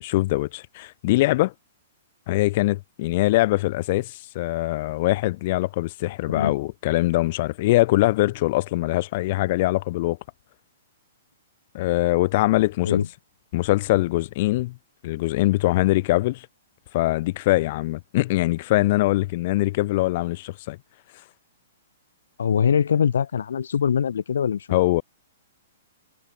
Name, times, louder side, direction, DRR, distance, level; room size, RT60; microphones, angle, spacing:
voice 1, 0.1-1.5 2.3-10.2 11.7-13.0 13.5-14.8 15.0-16.5 16.9-20.8 24.7-25.0, left 18 dB, 35° left, 5.2 m, -22 dB
voice 2, 22.4-24.8, left 7 dB, 80° left, 2.2 m, -23 dB
hypercardioid pair, 165°, 0 cm